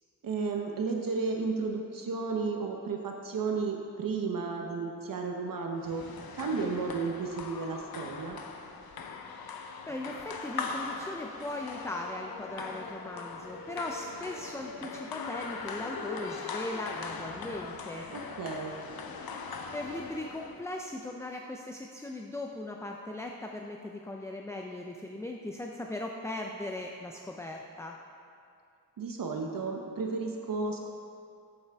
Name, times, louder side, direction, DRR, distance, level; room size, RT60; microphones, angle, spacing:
voice 1, 0.2-6.0 6.3-8.4 18.1-18.7 29.0-30.9, right 4 dB, 65° right, 2 dB, 0.7 m, -33 dB
sound 1, 5.8-20.7, left 4 dB, 85° left, 0.7 m, -40 dB
voice 2, 9.9-18.1 19.7-28.0, left 1 dB, 10° left, 2 dB, 0.4 m, -39 dB
8.3 x 7.8 x 3.4 m, 2.6 s
wide cardioid pair, 90°, 36 cm